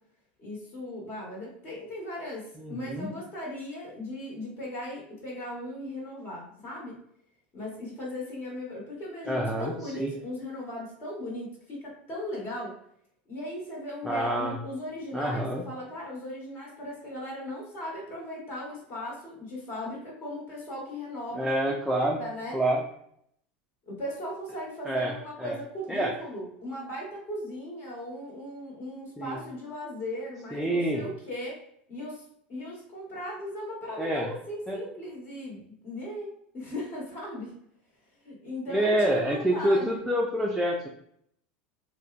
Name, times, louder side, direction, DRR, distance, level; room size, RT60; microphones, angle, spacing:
voice 1, 0.4-7.0 7.5-12.7 13.3-21.5 21.9-22.6 23.8-31.6 31.9-32.2 32.5-37.5 38.2-40.0, left 1 dB, 40° left, -4 dB, 1.1 m, -38 dB
voice 2, 2.6-3.1 9.3-10.1 14.0-14.6 15.1-15.6 21.3-22.2 22.5-22.8 24.9-25.1 25.4-25.6 25.9-26.1 29.2-29.4 30.5-31.1 34.0-34.3 34.7-34.8 38.7-40.9, right 1 dB, ahead, -2 dB, 0.4 m, -27 dB
2.6 x 2.1 x 2.3 m, 0.70 s
hypercardioid pair, 95°, 6 cm